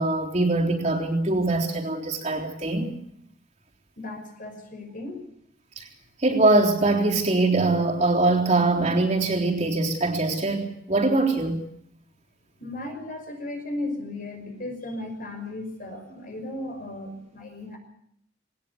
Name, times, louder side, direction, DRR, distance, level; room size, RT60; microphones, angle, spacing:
voice 1, 0.0-3.0 5.8-5.9 6.2-11.6, right 2 dB, 35° right, 0 dB, 3.6 m, -23 dB
voice 2, 4.0-5.2 12.6-17.8, left 2 dB, 45° left, 5 dB, 5.9 m, -35 dB
20.5 x 19.0 x 8.5 m, 0.70 s
head